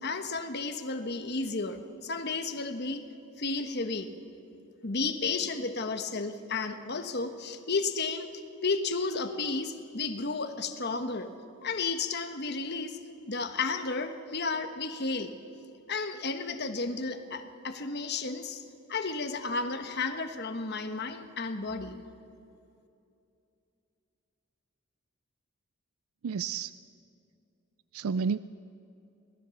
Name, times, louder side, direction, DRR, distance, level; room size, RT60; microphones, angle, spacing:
voice 1, 0.0-3.0 3.4-4.1 4.8-11.3 11.6-13.0 13.3-15.3 15.9-18.6 18.9-22.0, left 3 dB, 50° left, 8 dB, 1.3 m, -33 dB
voice 2, 26.2-26.8 27.9-28.4, right 5 dB, 80° right, 16 dB, 0.4 m, -30 dB
25.0 x 18.5 x 7.1 m, 2.7 s
head